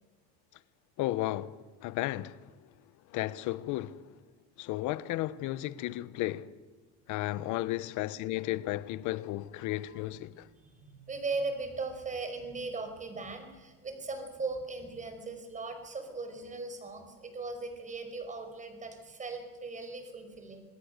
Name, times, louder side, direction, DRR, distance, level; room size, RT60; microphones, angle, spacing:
voice 1, 1.0-2.5 3.1-4.0 4.6-6.5 7.1-10.5, left 16 dB, 50° left, 1.1 m, -34 dB
voice 2, 9.6-10.0 10.5-20.6, right 3 dB, 20° right, 5.1 m, -39 dB
26.5 x 20.0 x 6.7 m
supercardioid pair, 135°, 39 cm